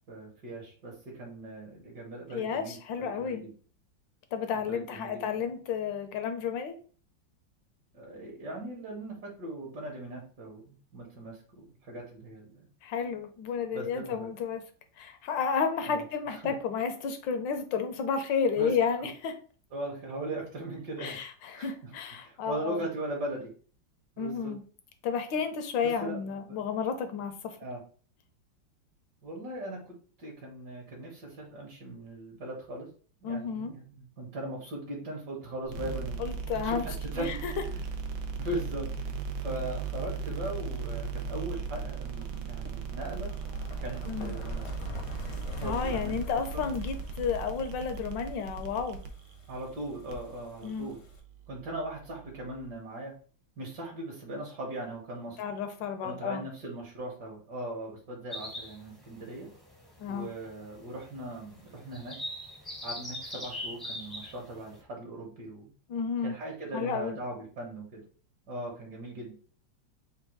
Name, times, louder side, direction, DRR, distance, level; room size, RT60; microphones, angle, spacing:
voice 1, 0.1-3.5 4.5-5.5 7.9-12.6 13.7-14.3 15.9-16.5 18.6-18.7 19.7-21.2 21.5-21.9 22.2-23.5 24.2-24.5 25.8-26.4 27.6-27.8 29.2-32.9 33.2-36.2 36.5-37.4 37.7-37.8 38.4-39.1 39.4-43.3 43.8-44.7 45.6-46.1 46.5-46.7 49.5-51.0 51.5-53.1 53.6-55.4 56.0-59.5 60.1-62.2 62.8-65.7 66.2-68.0 68.5-69.3, right 1 dB, 60° right, -2 dB, 1.8 m, -39 dB
voice 2, 2.3-3.4 4.3-6.7 12.8-14.6 15.0-19.4 21.0-22.8 24.2-24.6 25.0-27.6 33.2-33.7 36.2-36.9 37.2-37.5 44.1-44.4 45.6-49.0 50.6-50.9 55.4-56.5 60.0-60.3 65.9-66.4 66.7-67.2, left 6 dB, 80° left, 8 dB, 1.4 m, -32 dB
sound 1, 35.6-52.7, right 6 dB, 90° right, 1.4 m, -38 dB
sound 2, 40.0-51.2, left 2 dB, 55° left, 0.8 m, -45 dB
sound 3, 58.3-64.8, left 1 dB, ahead, 0.5 m, -42 dB
4.5 x 2.3 x 4.5 m, 0.41 s
omnidirectional pair, 2.0 m